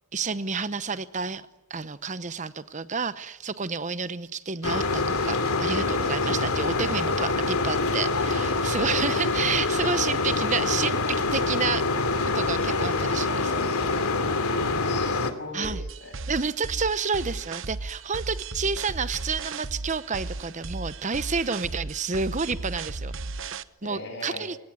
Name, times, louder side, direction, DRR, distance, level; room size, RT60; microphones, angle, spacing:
voice 1, 0.1-1.4 1.7-11.8 12.2-13.7 15.5-15.8 16.3-23.1 23.8-24.6, right 5 dB, 35° right, 14 dB, 0.8 m, -30 dB
sound 1, 4.6-15.3, left 3 dB, 80° left, 2.7 m, -25 dB
voice 2, 14.3-16.2 23.8-24.5, left 2 dB, 50° left, 7 dB, 6.9 m, -39 dB
sound 2, 15.6-23.6, right 3 dB, 60° right, 1.0 m, -35 dB
29.0 x 18.5 x 9.6 m, 1.0 s
head